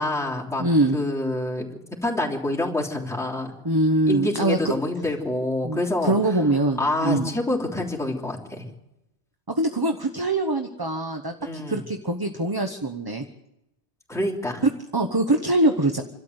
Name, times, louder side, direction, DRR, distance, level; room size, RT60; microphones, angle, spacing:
voice 1, 0.0-0.6 0.9-1.7 2.0-3.5 4.1-6.1 6.8-8.7 11.4-11.8 14.1-14.6, left 1 dB, 5° left, -3 dB, 3.3 m, -27 dB
voice 2, 0.6-1.0 3.6-4.7 5.6-7.3 9.5-13.2 14.6-16.0, right 2 dB, 20° right, 5 dB, 1.1 m, -23 dB
27.0 x 13.0 x 8.1 m, 0.89 s
omnidirectional pair, 1.1 m